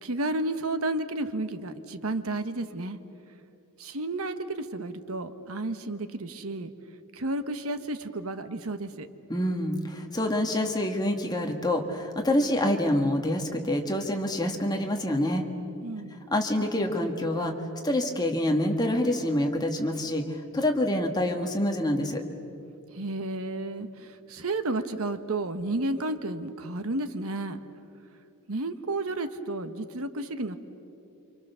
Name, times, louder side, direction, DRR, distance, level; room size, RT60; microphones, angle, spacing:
voice 1, 0.0-3.0 3.8-6.7 7.1-9.1 15.8-16.2 22.9-27.6 28.5-30.6, right 2 dB, 65° right, 10 dB, 1.2 m, -32 dB
voice 2, 9.3-15.4 16.3-17.5 17.8-22.2, left 1 dB, 20° left, 3 dB, 1.9 m, -26 dB
29.5 x 26.0 x 6.9 m, 2.8 s
head